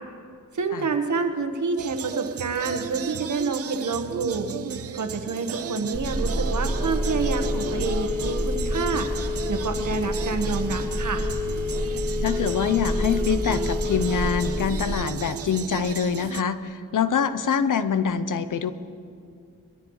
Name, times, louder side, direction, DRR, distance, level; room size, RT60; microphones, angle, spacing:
voice 1, 0.5-4.5 4.9-11.2, right 4 dB, 65° right, 6 dB, 1.3 m, -28 dB
sound 1, 1.8-16.4, right 9 dB, 50° right, 0.4 m, -35 dB
Telephone, 5.9-14.9, left 1 dB, 10° left, 3.1 m, -27 dB
voice 2, 12.2-18.7, left 7 dB, 75° left, 12 dB, 0.7 m, -25 dB
22.0 x 13.5 x 3.2 m, 2.3 s
cardioid pair, 60°, 32 cm